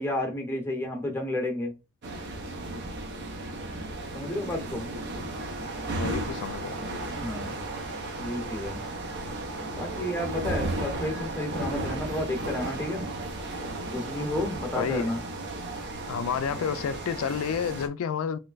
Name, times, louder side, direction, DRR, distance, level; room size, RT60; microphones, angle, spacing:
voice 1, 0.0-1.7 4.1-4.8 7.2-7.6 8.2-8.8 9.7-13.1 13.9-15.2, left 1 dB, 10° left, 0.7 m, -31 dB
sound 1, 2.0-17.9, right 2 dB, 55° right, 0.6 m, -34 dB
voice 2, 6.0-6.9 14.8-15.1 16.1-18.4, left 7 dB, 85° left, 0.3 m, -30 dB
3.1 x 3.1 x 2.4 m
head